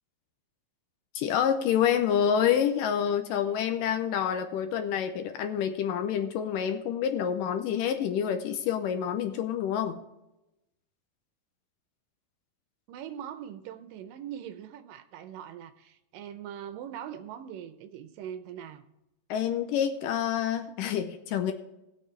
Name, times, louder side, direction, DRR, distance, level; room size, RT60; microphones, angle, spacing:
voice 1, 1.2-10.0 19.3-21.5, left 8 dB, 75° left, 7 dB, 2.1 m, -27 dB
voice 2, 12.9-18.8, right 9 dB, 75° right, 9 dB, 2.2 m, -41 dB
19.5 x 6.7 x 3.3 m, 0.93 s
omnidirectional pair, 4.2 m